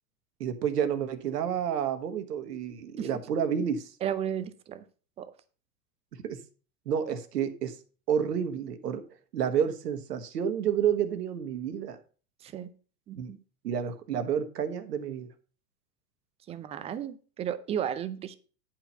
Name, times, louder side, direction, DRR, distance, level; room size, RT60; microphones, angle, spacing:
voice 1, 0.4-3.9 6.2-6.4 6.9-7.7 8.1-9.0 9.3-12.0 13.1-13.3 13.6-15.3, right 8 dB, 80° right, 9 dB, 1.3 m, -30 dB
voice 2, 4.0-4.8 5.2-5.3 12.4-12.7 13.1-13.4 16.5-18.4, right 9 dB, 15° right, 14 dB, 0.3 m, -34 dB
10.0 x 4.5 x 5.4 m, 0.38 s
hypercardioid pair, 100°, 47 cm